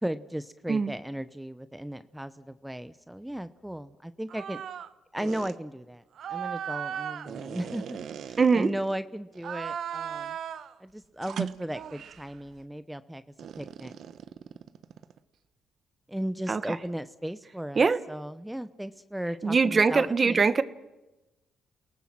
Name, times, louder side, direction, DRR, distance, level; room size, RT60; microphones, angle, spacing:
voice 1, 0.0-4.6 5.1-6.0 6.3-10.4 10.8-13.2 13.6-13.9 16.1-20.5, right 1 dB, 5° right, 13 dB, 0.9 m, -36 dB
sound 1, 4.3-4.9 5.2-5.5 6.2-8.9 9.4-10.7 11.2-12.3 13.4-15.2, right 8 dB, 65° right, 1.0 m, -37 dB
voice 2, 8.4-8.7 16.5-16.6 17.8-18.0 19.4-20.6, right 4 dB, 35° right, 14 dB, 1.2 m, -22 dB
29.5 x 18.5 x 7.6 m, 1.0 s
cardioid pair, 90°, 0 cm